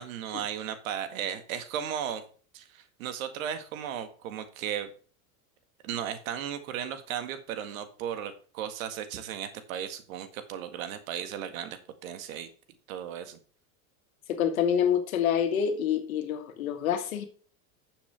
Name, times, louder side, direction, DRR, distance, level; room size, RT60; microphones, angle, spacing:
voice 1, 0.0-2.2 2.5-4.9 5.8-12.5 12.9-13.4, right 9 dB, 75° right, 1.8 m, -35 dB
voice 2, 14.3-17.2, left 8 dB, 85° left, 1.8 m, -27 dB
11.5 x 7.2 x 3.4 m
hypercardioid pair, 95°, 41 cm